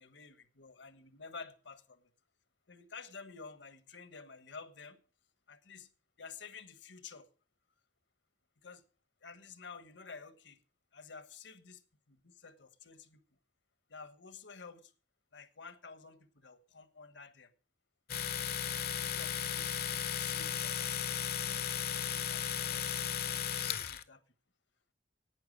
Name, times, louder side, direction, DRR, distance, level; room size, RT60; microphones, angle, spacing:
voice 1, 0.0-2.0 2.7-5.0 5.5-5.9 6.2-7.3 8.6-8.8 9.2-10.6 10.9-11.8 12.1-13.2 13.9-14.9 15.3-17.5 18.7-21.0 21.4-23.5 23.8-24.2, left 5 dB, 80° left, 1.4 m, -51 dB
Domestic sounds home sounds, 18.1-24.0, left 9 dB, 55° left, 0.8 m, -35 dB
11.5 x 9.2 x 6.5 m
head